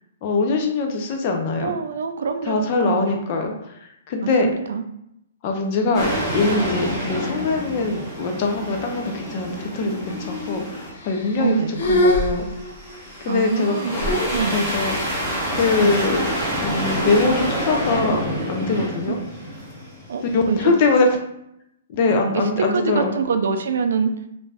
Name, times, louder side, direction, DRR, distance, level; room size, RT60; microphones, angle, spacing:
voice 1, 0.2-1.7 2.5-3.5 4.1-4.5 5.4-11.6 11.8-12.5 13.2-14.2 14.5-15.3 15.5-16.2 16.6-18.2 18.5-19.2 20.3-21.1 21.9-23.1, left 3 dB, 35° left, 3 dB, 0.4 m, -22 dB
voice 2, 1.6-3.2 4.2-4.8 11.4-11.8 13.2-14.0 14.3-14.7 15.8-16.0 19.1-19.2 20.1-20.8 22.3-24.1, right 5 dB, 70° right, 7 dB, 0.3 m, -25 dB
sound 1, 5.9-11.0 11.3-20.5, equal, 5° right, 0.9 m, -28 dB
sound 2, 10.1-10.6 11.0-11.5 11.8-13.0 13.9-15.1, left 1 dB, 80° left, 0.6 m, -24 dB
2.5 x 2.2 x 3.2 m, 0.79 s
hypercardioid pair, 165°, 0 cm